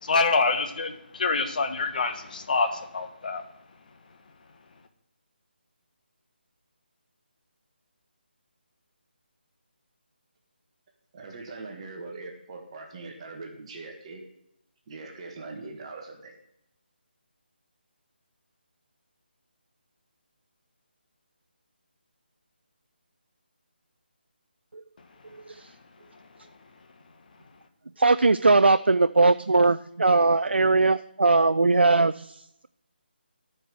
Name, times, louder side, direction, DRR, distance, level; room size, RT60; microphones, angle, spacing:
voice 1, 0.0-3.4, left 4 dB, 50° left, 7 dB, 1.3 m, -26 dB
voice 2, 11.1-14.2 14.9-16.4, right 3 dB, 35° right, 2 dB, 1.6 m, -41 dB
voice 3, 28.0-32.7, right 3 dB, 85° right, 12 dB, 0.4 m, -20 dB
13.5 x 5.4 x 6.3 m, 0.79 s
figure-of-eight pair, 155°, 6 cm